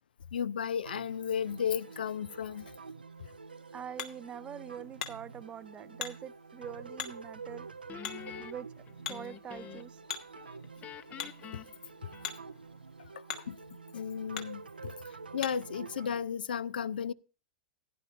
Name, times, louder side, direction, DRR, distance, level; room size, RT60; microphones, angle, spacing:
voice 1, 0.3-2.7 11.5-11.6 13.1-13.6 13.9-17.1, left 8 dB, 75° left, 0.4 m, -34 dB
sound 1, 0.9-16.2, right 4 dB, 90° right, 0.5 m, -48 dB
Hammer, 3.1-15.8, left 9 dB, 55° left, 1.3 m, -46 dB
voice 2, 3.7-7.7 8.4-8.7 9.1-10.0 14.9-15.0, right 9 dB, 20° right, 0.4 m, -44 dB
Guitar, 7.9-10.0 10.3-12.7, left 10 dB, 30° left, 0.6 m, -47 dB
15.5 x 10.0 x 2.4 m
figure-of-eight pair, 100°, 5 cm